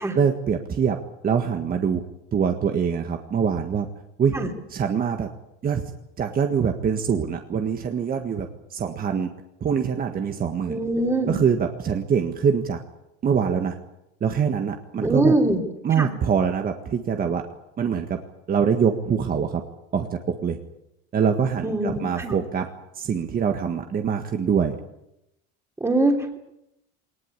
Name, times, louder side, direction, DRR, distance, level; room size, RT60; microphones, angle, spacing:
voice 1, 0.1-2.0 2.3-3.9 4.2-4.4 4.7-5.3 5.6-5.8 6.2-9.3 9.6-10.8 11.3-12.8 13.2-13.8 14.2-15.3 15.8-17.5 17.8-18.2 18.5-19.6 19.9-20.6 21.1-24.8, right 7 dB, 30° right, 5 dB, 1.7 m, -24 dB
voice 2, 10.7-11.4 15.0-15.6 16.0-16.1 21.6-22.3 25.8-26.4, right 2 dB, 10° right, 2 dB, 3.1 m, -22 dB
21.0 x 19.5 x 9.8 m, 0.86 s
cardioid pair, 135°, 29 cm